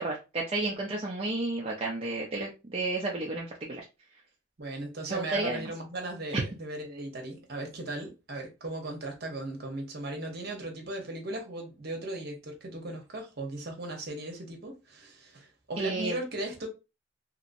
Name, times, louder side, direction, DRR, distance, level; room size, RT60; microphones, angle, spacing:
voice 1, 0.0-3.8 5.1-5.7 6.3-6.4 15.8-16.2, right 2 dB, 30° right, 0.5 m, -32 dB
voice 2, 4.6-16.7, right 2 dB, 55° right, 0.9 m, -37 dB
3.0 x 2.7 x 2.6 m
head